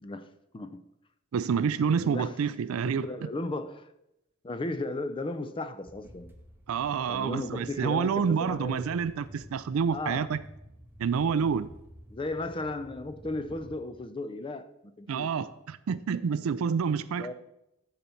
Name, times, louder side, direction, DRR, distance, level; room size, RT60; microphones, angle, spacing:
voice 1, 0.5-0.8 2.0-2.3 3.0-3.9 4.4-6.3 7.1-9.0 9.9-10.3 12.1-15.3 17.2-17.3, left 2 dB, 25° left, 11 dB, 0.4 m, -35 dB
voice 2, 1.3-3.3 6.7-10.4 11.0-11.7 15.1-17.3, right 6 dB, 75° right, 16 dB, 0.4 m, -28 dB
sound 1, 5.8-13.8, right 1 dB, 10° right, 0.7 m, -51 dB
10.5 x 4.1 x 4.4 m, 0.85 s
head